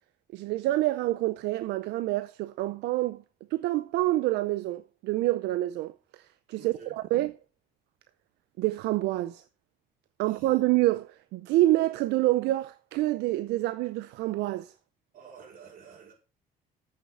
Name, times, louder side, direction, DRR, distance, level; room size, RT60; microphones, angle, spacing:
voice 1, 0.3-3.2 3.5-7.3 8.6-9.4 10.2-14.7, right 16 dB, 85° right, 0.5 m, -27 dB
voice 2, 6.6-7.0 10.2-10.5 15.1-16.1, right 6 dB, 55° right, 4.5 m, -50 dB
8.0 x 6.8 x 6.4 m
cardioid pair, 110°, 17 cm